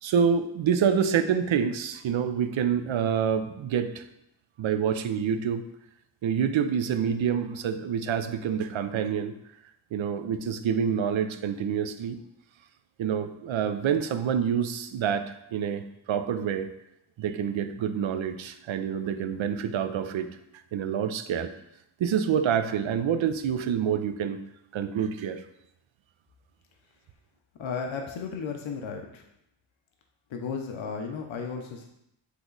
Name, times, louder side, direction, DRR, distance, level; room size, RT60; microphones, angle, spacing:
voice 1, 0.0-4.0 4.6-5.6 6.2-9.3 9.9-12.2 13.0-16.7 17.2-20.3 20.7-21.5 22.0-24.4 24.7-25.4, right 7 dB, 75° right, 9 dB, 0.6 m, -27 dB
voice 2, 27.6-29.2 30.3-31.9, left 5 dB, 70° left, 3 dB, 0.8 m, -34 dB
8.2 x 3.0 x 3.9 m, 0.79 s
wide cardioid pair, 140°, 48 cm